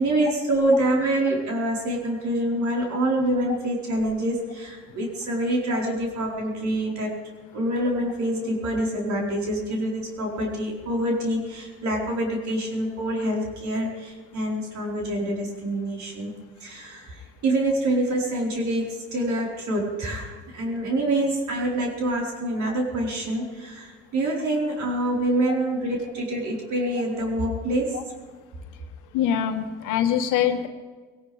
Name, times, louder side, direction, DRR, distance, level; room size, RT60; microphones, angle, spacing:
voice 1, 0.0-7.2 7.5-28.0, right 1 dB, 60° right, -2 dB, 4.8 m, -26 dB
voice 2, 29.1-30.7, left 9 dB, 70° left, 6 dB, 1.5 m, -23 dB
20.5 x 18.0 x 3.5 m, 1.4 s
hypercardioid pair, 60°, 33 cm